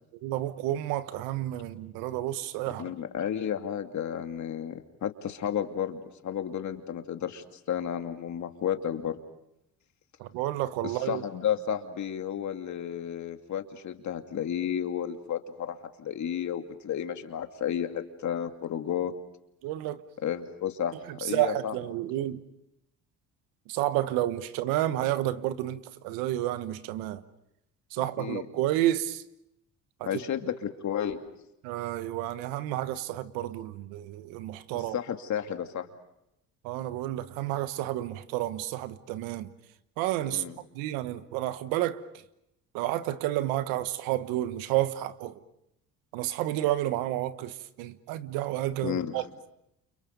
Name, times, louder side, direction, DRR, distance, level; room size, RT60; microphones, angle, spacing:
voice 1, 0.2-2.9 10.2-11.2 19.6-20.0 21.1-22.4 23.7-27.2 27.9-29.2 30.0-30.1 31.6-35.0 36.6-39.5 40.0-40.4 40.7-42.0 42.7-45.4 46.1-49.5, right 14 dB, 85° right, 1.3 m, -30 dB
voice 2, 2.8-9.1 10.8-19.1 20.2-20.9 21.2-21.7 28.2-28.5 30.0-31.2 34.9-35.9 40.3-40.6 48.8-49.1, left 9 dB, 55° left, 2.6 m, -32 dB
30.0 x 29.0 x 5.3 m
supercardioid pair, 75°, 34 cm